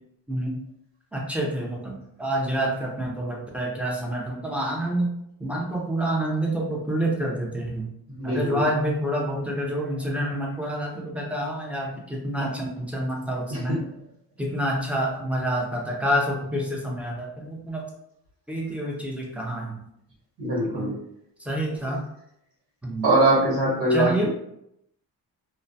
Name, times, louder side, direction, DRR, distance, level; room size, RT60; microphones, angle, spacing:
voice 1, 0.3-0.6 1.1-5.1 5.4-7.9 8.2-13.8 14.4-17.8 18.5-19.8 20.7-20.9 21.4-22.0 22.8-23.1 23.9-24.3, right 1 dB, 5° right, -2 dB, 0.6 m, -28 dB
voice 2, 8.1-8.6 13.5-13.8 20.4-20.9 23.0-24.3, right 1 dB, 75° right, -6 dB, 1.3 m, -22 dB
2.2 x 2.2 x 2.6 m, 0.76 s
cardioid pair, 85°, 41 cm